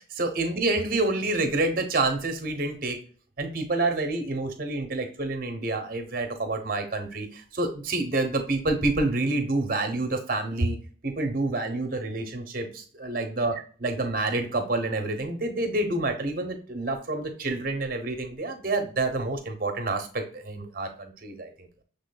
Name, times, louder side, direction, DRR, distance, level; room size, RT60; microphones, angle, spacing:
voice 1, 0.0-3.0 3.4-10.8 11.0-13.5 13.8-21.8, right 2 dB, 50° right, 5 dB, 0.9 m, -28 dB
6.3 x 3.5 x 2.2 m, 0.43 s
head